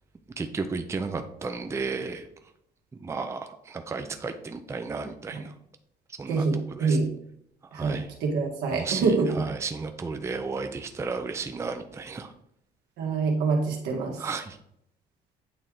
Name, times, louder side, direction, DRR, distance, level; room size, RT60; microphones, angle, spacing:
voice 1, 0.4-2.3 2.9-5.5 6.2-7.0 7.7-8.1 8.7-12.3 14.2-14.6, right 4 dB, 15° right, 7 dB, 0.5 m, -33 dB
voice 2, 6.3-7.1 7.7-9.3 13.0-14.2, right 4 dB, 85° right, 0 dB, 1.6 m, -26 dB
8.7 x 3.1 x 3.8 m, 0.72 s
cardioid pair, 110°, 17 cm